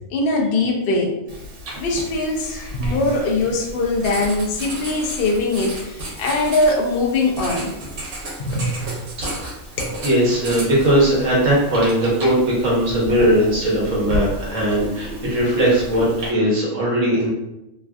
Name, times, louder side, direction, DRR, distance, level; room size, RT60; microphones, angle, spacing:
voice 1, 0.1-1.1 1.8-7.7 8.4-8.8 9.8-9.9, left 2 dB, 60° left, -1 dB, 0.6 m, -21 dB
Writing, 1.3-16.3, equal, 85° right, 1.3 m, -33 dB
voice 2, 10.0-17.3, right 1 dB, 65° right, -5 dB, 1.3 m, -19 dB
3.2 x 2.4 x 2.3 m, 0.91 s
omnidirectional pair, 1.5 m